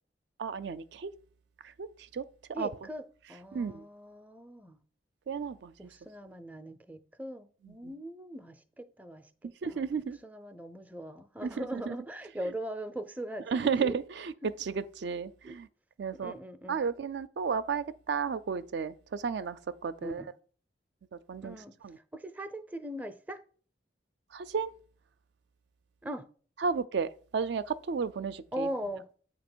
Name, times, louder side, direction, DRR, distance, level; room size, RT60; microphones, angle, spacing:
voice 1, 0.4-1.1 1.6-1.9 2.1-2.2 2.6-2.7 3.5-3.8 5.3-5.7 7.7-7.9 9.6-10.2 11.4-11.9 13.5-14.3 14.6-15.7 16.0-16.3 16.7-20.2 21.3-21.6 21.8-22.0 24.3-24.7 26.6-28.7, right 5 dB, 65° right, 0.4 m, -33 dB
voice 2, 2.5-4.8 5.8-9.9 10.2-13.9 14.4-14.5 15.4-15.6 16.1-16.8 20.0-20.3 21.4-21.7 22.1-23.4 26.0-26.3 28.5-29.1, right 1 dB, 10° right, 0.4 m, -40 dB
8.2 x 2.9 x 6.0 m
head